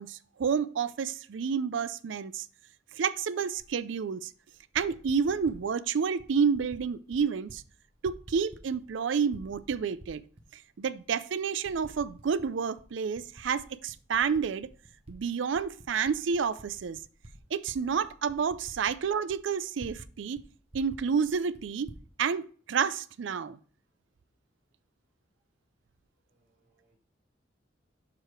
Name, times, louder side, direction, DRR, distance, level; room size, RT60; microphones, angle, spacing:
voice 1, 0.0-2.5 2.9-4.3 4.7-7.6 8.0-10.2 10.8-14.7 15.1-17.0 17.5-20.4 20.7-21.9 22.2-23.6, right 6 dB, 75° right, 0.4 m, -30 dB
Typing, 3.6-3.7 4.5-5.6 6.2-6.8 7.1-7.6 7.9-9.0 9.3-10.5 11.0-11.1 11.6-12.5 12.8-15.2 15.5-20.1 20.3-20.4 20.7-22.0, right 1 dB, 30° right, 0.9 m, -50 dB
voice 2, 26.3-27.0, right 3 dB, 55° right, 2.0 m, -72 dB
6.9 x 4.8 x 4.4 m
head